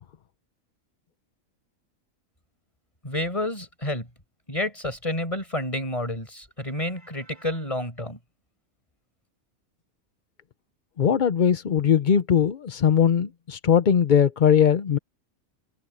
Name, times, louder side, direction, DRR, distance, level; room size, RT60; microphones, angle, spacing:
voice 1, 3.0-4.1 4.5-8.2, left 1 dB, 25° left, 5.5 m, -29 dB
voice 2, 11.0-15.0, left 8 dB, 45° left, 0.6 m, -20 dB
omnidirectional pair, 1.4 m